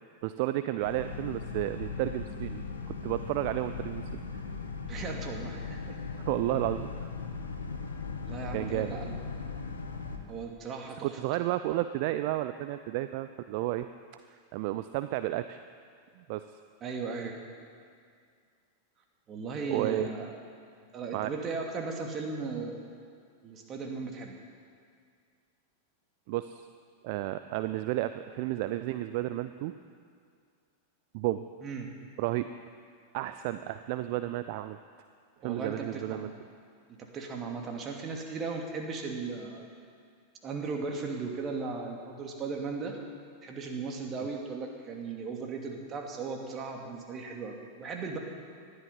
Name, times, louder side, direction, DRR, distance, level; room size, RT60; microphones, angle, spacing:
voice 1, 0.2-4.4 6.3-7.1 8.5-9.0 11.0-13.9 14.5-15.6 16.2-16.4 19.7-20.1 21.1-21.3 26.3-26.7 27.0-29.7 31.1-31.4 32.2-32.5 33.1-34.8 35.4-36.3, right 15 dB, 45° right, 11 dB, 0.5 m, -32 dB
Boat Water vehicle, 0.8-10.2, left 4 dB, 70° left, 1.6 m, -38 dB
voice 2, 4.9-6.0 8.3-9.2 10.3-11.1 16.8-17.4 19.3-20.3 20.9-22.8 23.4-24.4 31.6-31.9 35.4-36.3 36.9-39.7 40.4-43.0 43.4-48.2, right 4 dB, 30° right, 2 dB, 2.5 m, -37 dB
20.0 x 13.0 x 5.6 m, 2.2 s
figure-of-eight pair, 90°, 0 cm